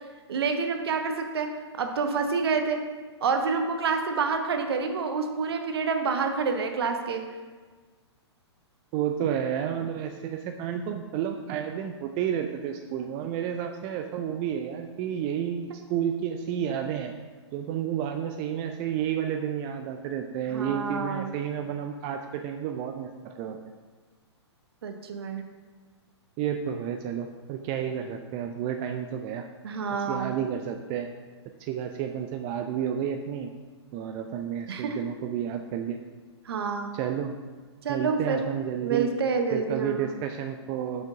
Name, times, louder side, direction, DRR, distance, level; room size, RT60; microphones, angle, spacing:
voice 1, 0.3-2.8 3.2-7.2 20.5-21.3 24.8-25.4 29.6-30.4 34.7-35.1 36.4-37.0 37.8-38.4 38.8-40.1, right 5 dB, 60° right, 5 dB, 0.9 m, -28 dB
voice 2, 8.9-17.1 17.5-23.6 26.4-29.5 30.1-31.1 31.6-33.5 33.9-36.0 36.9-37.3 37.9-39.1 39.5-41.0, right 9 dB, 30° right, 5 dB, 0.4 m, -31 dB
6.2 x 5.1 x 4.9 m, 1.5 s
figure-of-eight pair, 115°, 15 cm